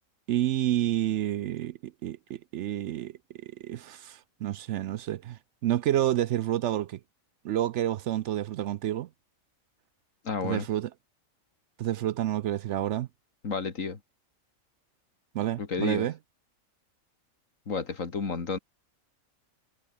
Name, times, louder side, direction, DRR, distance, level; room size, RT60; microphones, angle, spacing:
voice 1, 0.3-3.1 3.4-7.0 7.4-9.1 10.4-10.9 11.8-13.1 15.3-16.2, right 12 dB, 70° right, 0.8 m, -29 dB
voice 2, 10.2-10.7 13.4-14.0 15.6-16.1 17.7-18.6, left 5 dB, 70° left, 2.5 m, -31 dB
omnidirectional pair, 1.4 m